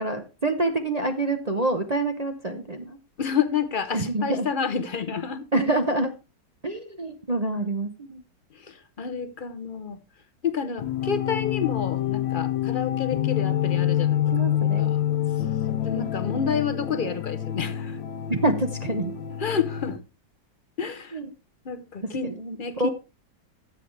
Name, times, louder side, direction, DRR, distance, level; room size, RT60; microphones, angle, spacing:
voice 1, 0.0-3.0 3.9-4.5 5.5-6.1 6.6-8.2 14.3-15.0 18.3-19.1 20.8-21.3 22.2-22.9, right 2 dB, 35° right, 0.7 m, -27 dB
voice 2, 3.2-5.5 8.7-10.0 10.4-15.0 15.7-18.0 19.4-20.0 20.8-21.2 21.7-22.9, left 6 dB, 55° left, 0.5 m, -29 dB
sound 1, 10.8-20.0, left 11 dB, 85° left, 1.6 m, -27 dB
12.5 x 7.8 x 3.3 m
omnidirectional pair, 2.0 m